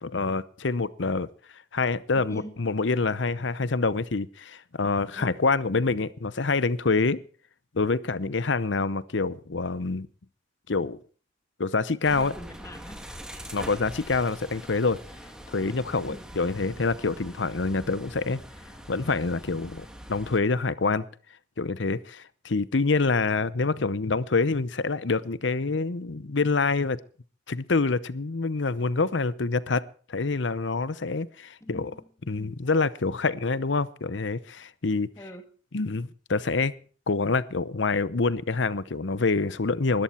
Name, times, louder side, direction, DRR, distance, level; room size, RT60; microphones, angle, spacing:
voice 1, 0.0-1.3 1.7-7.2 7.7-10.1 10.7-11.0 11.6-12.3 13.5-15.0 15.5-18.4 18.9-21.0 21.6-27.0 27.5-31.9 32.3-35.1 35.7-36.7 37.1-40.0, left 3 dB, 70° left, 0.8 m, -26 dB
voice 2, 2.2-2.6 5.1-5.4 12.1-13.1 16.0-16.2 31.6-32.5 35.2-35.5, equal, 15° left, 1.9 m, -43 dB
sound 1, 12.0-20.4, equal, 5° right, 2.5 m, -43 dB
20.0 x 13.5 x 4.4 m
head